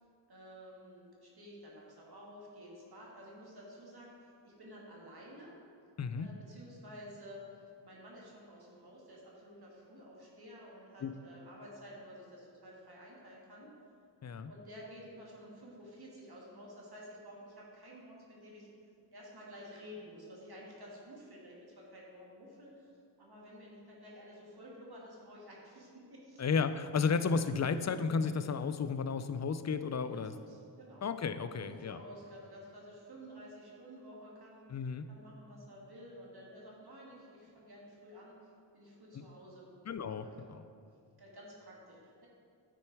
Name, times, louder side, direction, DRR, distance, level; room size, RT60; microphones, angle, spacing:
voice 1, 0.3-5.6 6.2-7.4 7.8-13.7 14.5-18.7 19.1-22.9 23.2-26.4 30.0-31.1 31.5-34.6 35.1-38.4 38.7-39.7 40.2-40.4 41.2-42.3, equal, 55° right, -4 dB, 1.8 m, -52 dB
voice 2, 6.0-6.3 11.0-11.1 14.2-14.5 26.4-30.4 31.0-32.0 34.7-35.1 39.1-39.2 39.9-40.6, left 5 dB, 40° left, 11 dB, 0.4 m, -33 dB
9.1 x 4.4 x 4.6 m, 2.4 s
cardioid pair, 40°, 45 cm